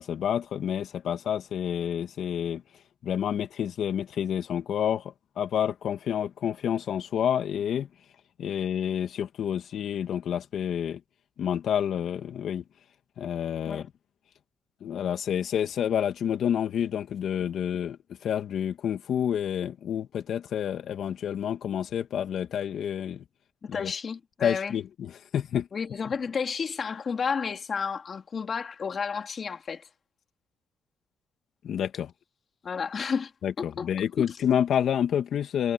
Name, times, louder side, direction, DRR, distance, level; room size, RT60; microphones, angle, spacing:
voice 1, 0.0-2.6 3.0-7.9 8.4-11.0 11.4-12.6 13.2-13.9 14.8-23.2 23.7-23.9 24.4-25.7 31.6-32.1 33.4-35.7, left 9 dB, 65° left, 2.6 m, -29 dB
voice 2, 23.6-24.8 25.7-29.9 32.6-33.3 33.6-33.9 34.2-34.3, left 6 dB, 45° left, 3.3 m, -31 dB
cardioid pair, 90°, 0 cm